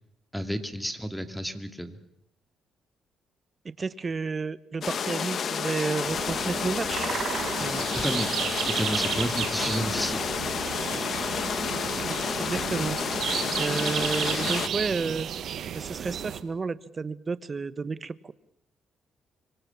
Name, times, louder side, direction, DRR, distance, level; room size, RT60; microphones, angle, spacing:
voice 1, 0.3-2.0 7.9-8.3 8.6-10.3, equal, ahead, 7 dB, 2.6 m, -31 dB
voice 2, 3.6-7.1 7.6-7.9 12.0-13.0 13.6-15.3 15.7-18.3, right 4 dB, 35° right, 16 dB, 1.1 m, -31 dB
sound 1, 4.8-14.7, left 7 dB, 55° left, 1.6 m, -30 dB
sound 2, 6.0-16.4, right 9 dB, 65° right, 1.8 m, -33 dB
26.0 x 24.0 x 7.1 m, 0.73 s
cardioid pair, 90°, 0 cm